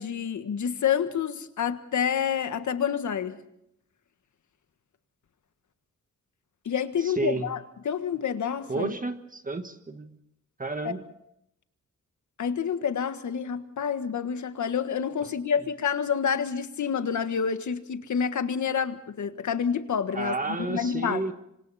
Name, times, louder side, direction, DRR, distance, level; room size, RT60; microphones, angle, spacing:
voice 1, 0.0-3.4 6.6-8.9 10.8-10.9 12.4-21.2, left 7 dB, 80° left, 1.6 m, -28 dB
voice 2, 7.0-7.5 8.7-10.2 10.6-11.0 15.2-15.3 20.1-21.3, right 3 dB, 30° right, 1.6 m, -31 dB
26.5 x 26.0 x 4.2 m
wide cardioid pair, 150°, 29 cm